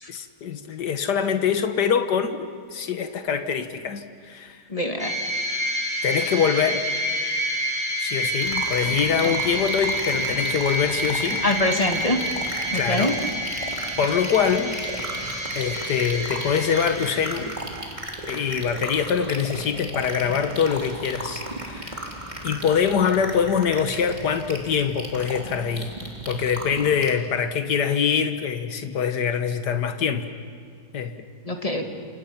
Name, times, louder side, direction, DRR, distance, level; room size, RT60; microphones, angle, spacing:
voice 1, 0.1-4.6 6.0-6.9 8.0-11.4 12.7-13.2 13.6-13.7 14.0-14.8 15.6-17.6 18.3-26.0 26.3-30.3 30.9-31.2, left 7 dB, 90° left, 8 dB, 1.9 m, -24 dB
voice 2, 4.7-5.1 9.2-9.3 11.4-12.2 12.7-13.1 31.5-31.9, left 1 dB, 20° left, 3 dB, 2.2 m, -24 dB
sound 1, 5.0-17.8, equal, 5° right, 5.9 m, -28 dB
sound 2, 8.4-27.1, right 1 dB, 25° right, 3.5 m, -35 dB
29.0 x 28.0 x 5.9 m, 2.2 s
omnidirectional pair, 1.7 m